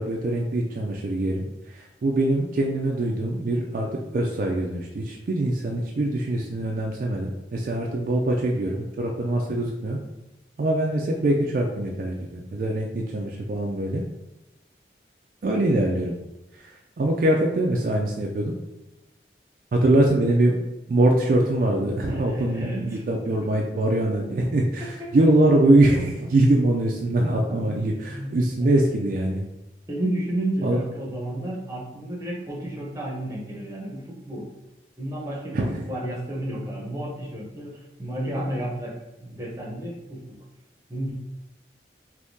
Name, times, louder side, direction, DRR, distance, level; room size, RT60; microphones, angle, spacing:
voice 1, 0.0-10.0 10.6-14.0 15.4-16.1 16.5-16.7 17.0-18.5 19.7-20.6 20.9-29.4 30.6-30.8 35.5-35.8, right 1 dB, 50° right, 0 dB, 0.3 m, -23 dB
voice 2, 22.0-23.0 25.2-25.3 27.5-27.8 28.1-28.9 29.9-34.5 35.0-38.9 39.2-40.2 40.9-41.1, right 1 dB, 15° right, -3 dB, 0.7 m, -32 dB
3.5 x 2.7 x 2.6 m, 0.95 s
head